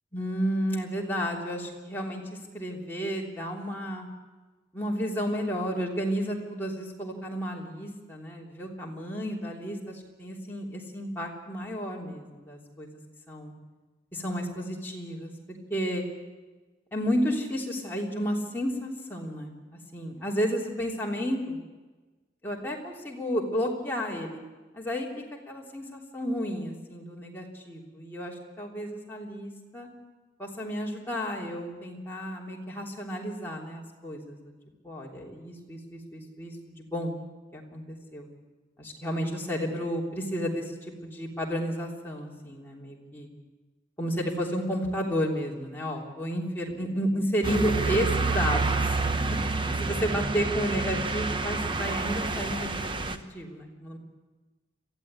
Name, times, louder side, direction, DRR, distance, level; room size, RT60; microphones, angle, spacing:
voice 1, 0.1-4.1 4.7-13.0 13.3-13.5 14.1-16.0 16.9-19.6 19.9-21.6 22.4-24.4 24.7-25.1 25.5-29.9 30.4-34.5 34.8-37.1 37.5-38.3 38.8-43.3 44.0-48.9 49.3-49.4 49.8-54.0, equal, 10° left, -3 dB, 3.3 m, -32 dB
sound 1, 47.4-53.2, right 3 dB, 25° right, 0.9 m, -28 dB
23.0 x 15.0 x 9.0 m, 1.3 s
head